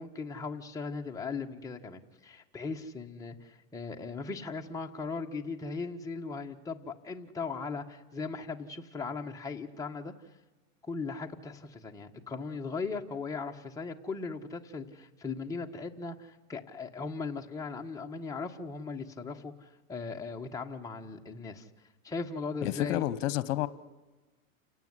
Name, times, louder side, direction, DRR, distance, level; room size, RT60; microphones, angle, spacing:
voice 1, 0.0-10.1 10.8-21.7 22.0-23.0, left 4 dB, 10° left, 0 dB, 1.6 m, -38 dB
voice 2, 22.6-23.7, left 15 dB, 60° left, 16 dB, 1.2 m, -30 dB
29.5 x 17.5 x 9.7 m, 1.2 s
supercardioid pair, 140°, 40 cm